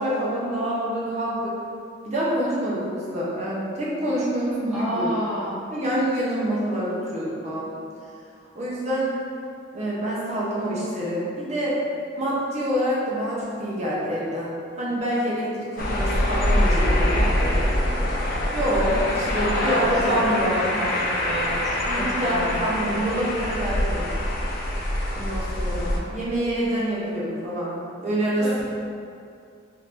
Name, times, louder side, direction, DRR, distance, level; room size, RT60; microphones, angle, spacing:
voice 1, 0.0-1.6 2.0-5.1 5.7-7.7 8.5-9.1 9.7-11.8 12.2-17.6 18.5-20.6 21.8-24.1 25.1-28.6, equal, 35° right, -6 dB, 0.7 m, -26 dB
voice 2, 4.7-5.6 19.3-22.8 28.4-28.6, equal, ahead, -12 dB, 1.0 m, -30 dB
sound 1, 15.8-26.0, left 1 dB, 50° left, 0.4 m, -24 dB
2.9 x 2.7 x 3.3 m, 2.4 s
head